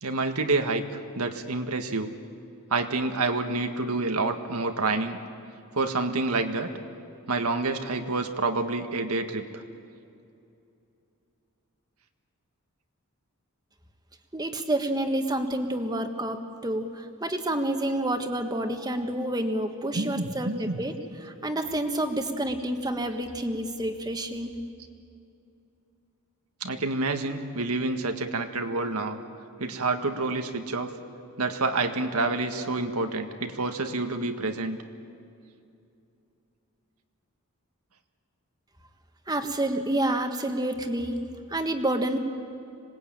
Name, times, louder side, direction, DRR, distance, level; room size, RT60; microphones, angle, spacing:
voice 1, 0.0-0.8 1.1-2.1 2.7-5.2 5.7-6.7 7.3-9.6 19.9-20.8 26.6-29.2 29.6-30.9 31.4-34.8, right 3 dB, 90° right, 6 dB, 1.7 m, -28 dB
voice 2, 14.3-20.9 21.2-24.5 39.3-41.2 41.5-42.2, right 1 dB, 20° right, 6 dB, 1.5 m, -29 dB
26.0 x 19.5 x 8.9 m, 2.6 s
head